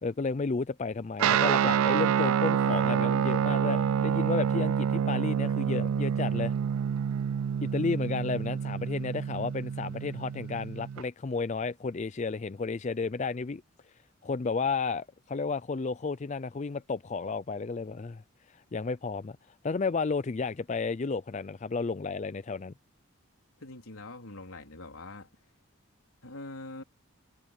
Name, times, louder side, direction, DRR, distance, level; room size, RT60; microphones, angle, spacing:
voice 1, 0.0-6.5 7.6-13.6 14.2-18.2 18.5-19.4 19.6-22.7, left 4 dB, 35° left, 0.4 m, -32 dB
Guitar, 1.2-11.0, right 8 dB, 80° right, 0.3 m, -27 dB
voice 2, 23.6-25.3 26.2-26.8, left 2 dB, 85° left, 3.8 m, -43 dB
head